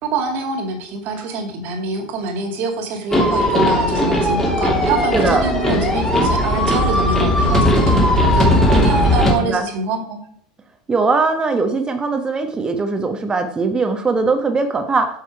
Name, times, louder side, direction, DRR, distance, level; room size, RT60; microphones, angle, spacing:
voice 1, 0.0-10.2, right 3 dB, 50° right, 5 dB, 2.2 m, -25 dB
sound 1, 3.1-9.3, left 1 dB, 10° left, 2.8 m, -17 dB
voice 2, 5.1-5.4 9.2-9.7 10.9-15.1, right 3 dB, 20° right, 7 dB, 1.2 m, -20 dB
8.6 x 6.3 x 4.7 m, 0.64 s
hypercardioid pair, 85°, 4 cm